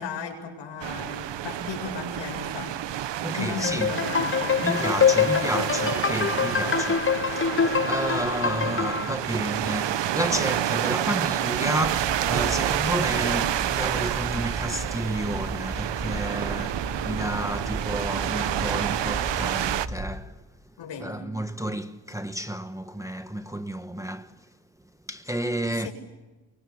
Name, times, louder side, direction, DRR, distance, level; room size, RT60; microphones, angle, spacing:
voice 1, 0.0-2.8 3.3-4.6 20.8-21.3 25.7-25.9, left 5 dB, 70° left, 7.8 m, -36 dB
sound 1, 0.8-19.9, right 12 dB, 65° right, 1.0 m, -29 dB
voice 2, 3.2-4.0 4.6-20.4 21.0-24.4 25.1-25.9, equal, 5° right, 1.2 m, -31 dB
sound 2, 3.6-9.1, left 6 dB, 25° left, 1.0 m, -24 dB
sound 3, 11.8-20.2, right 2 dB, 30° right, 2.4 m, -35 dB
26.0 x 24.0 x 7.2 m
cardioid pair, 90°, 45 cm